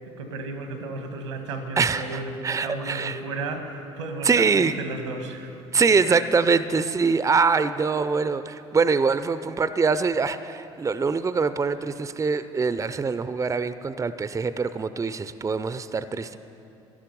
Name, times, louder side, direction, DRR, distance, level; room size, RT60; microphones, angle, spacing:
voice 1, 0.2-5.5, right 3 dB, 85° right, 6 dB, 1.3 m, -33 dB
voice 2, 1.8-3.2 4.2-4.7 5.7-16.4, right 5 dB, 20° right, 13 dB, 0.6 m, -24 dB
15.0 x 11.5 x 5.4 m, 2.9 s
hypercardioid pair, 55°, 15 cm